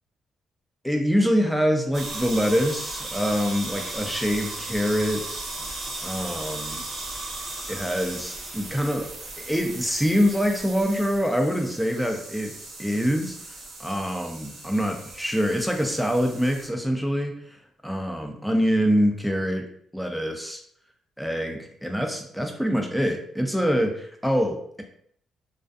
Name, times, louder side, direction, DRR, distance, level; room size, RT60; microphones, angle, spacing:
voice 1, 0.8-5.5 6.0-6.8 7.7-9.1 9.4-12.5 12.8-17.6 17.8-19.6 19.9-20.6 21.2-24.8, equal, ahead, 2 dB, 0.5 m, -25 dB
sound 1, 1.9-16.7, right 2 dB, 60° right, 0.7 m, -37 dB
2.4 x 2.4 x 2.4 m, 0.65 s
cardioid pair, 90°, 0 cm